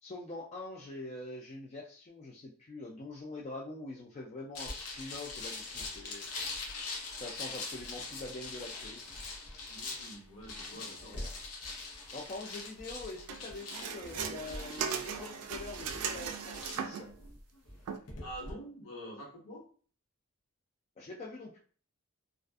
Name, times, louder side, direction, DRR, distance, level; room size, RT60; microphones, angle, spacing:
voice 1, 0.0-6.3 7.2-9.2 11.0-11.3 12.1-17.1 21.0-21.6, left 2 dB, 30° left, -3 dB, 0.3 m, -44 dB
sound 1, 4.5-18.5, left 3 dB, 85° left, 0.7 m, -43 dB
voice 2, 9.7-11.2 18.2-19.6, equal, 65° left, -3 dB, 1.1 m, -46 dB
sound 2, 13.3-17.1 17.9-18.0, right 7 dB, 85° right, 0.3 m, -38 dB
2.4 x 2.3 x 2.3 m, 0.42 s
head